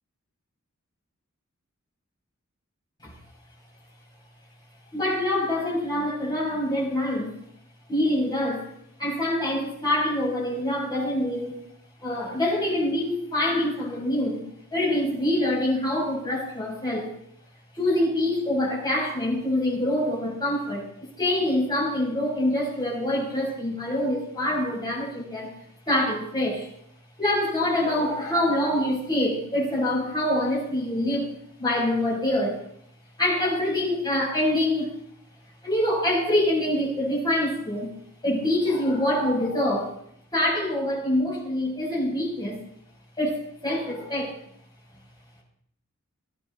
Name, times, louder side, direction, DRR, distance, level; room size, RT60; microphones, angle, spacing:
voice 1, 4.9-7.3 7.9-8.7 9.0-11.6 12.0-14.4 14.7-17.1 17.8-20.8 21.2-25.5 25.9-26.7 27.2-31.3 31.6-32.6 33.2-34.9 35.6-37.9 38.2-39.9 40.3-42.6 43.2-44.3, left 1 dB, 20° left, -4 dB, 6.0 m, -25 dB
18.0 x 10.0 x 4.2 m, 0.69 s
head